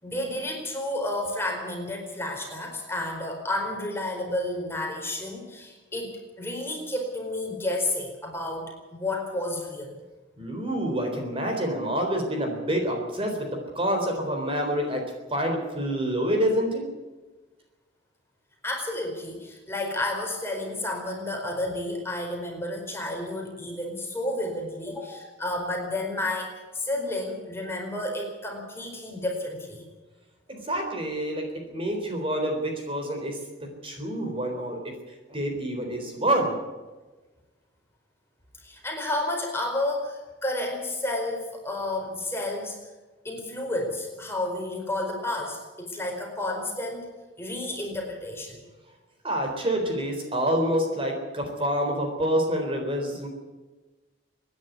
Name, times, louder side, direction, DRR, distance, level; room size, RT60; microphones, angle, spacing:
voice 1, 0.0-9.9 18.6-29.8 38.6-42.8 43.2-47.1 47.4-48.6, left 1 dB, 15° left, 1 dB, 4.6 m, -31 dB
voice 2, 10.4-13.5 13.7-15.0 15.3-16.9 30.5-33.4 33.8-34.9 35.3-36.6 49.2-53.3, right 1 dB, 30° right, 2 dB, 4.0 m, -27 dB
26.0 x 10.5 x 9.5 m, 1.2 s
head